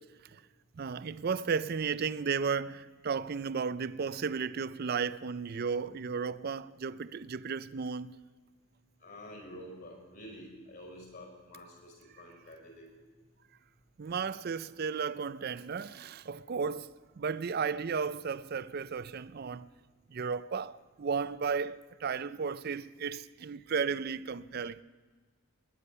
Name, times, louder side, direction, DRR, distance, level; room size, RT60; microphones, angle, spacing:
voice 1, 0.7-8.2 14.0-19.7 20.1-24.8, right 5 dB, 45° right, 0.4 m, -34 dB
voice 2, 9.0-12.9, equal, 50° left, 5.7 m, -48 dB
21.0 x 10.0 x 5.5 m
head